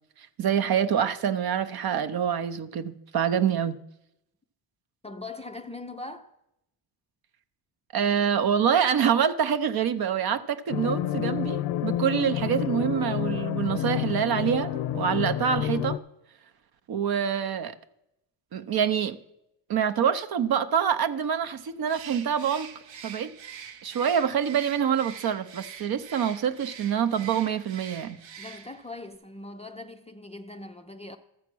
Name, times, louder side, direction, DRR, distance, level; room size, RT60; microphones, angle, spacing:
voice 1, 0.2-3.8 7.9-16.0 16.9-17.8 18.5-19.2 19.7-22.7 23.0-23.3 23.8-28.2, right 8 dB, 50° right, 0.7 m, -26 dB
voice 2, 5.0-6.3 28.4-31.2, left 2 dB, 15° left, 0.3 m, -41 dB
sound 1, 10.7-16.0, left 12 dB, 70° left, 0.5 m, -29 dB
Bird, 21.8-28.9, right 7 dB, 70° right, 1.0 m, -44 dB
13.0 x 7.1 x 6.1 m
cardioid pair, 115°, 47 cm